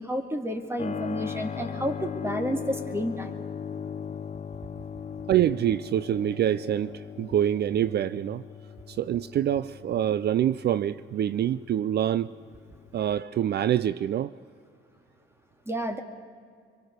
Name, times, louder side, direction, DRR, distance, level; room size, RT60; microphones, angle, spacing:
voice 1, 0.0-3.4 15.7-16.0, equal, 10° right, 5 dB, 2.4 m, -30 dB
Keyboard (musical), 0.8-13.2, left 7 dB, 35° left, 0.8 m, -39 dB
voice 2, 5.3-8.4 8.9-12.3 12.9-14.3, right 11 dB, 55° right, 16 dB, 0.5 m, -26 dB
24.5 x 23.0 x 6.7 m, 2.2 s
cardioid pair, 90°, 20 cm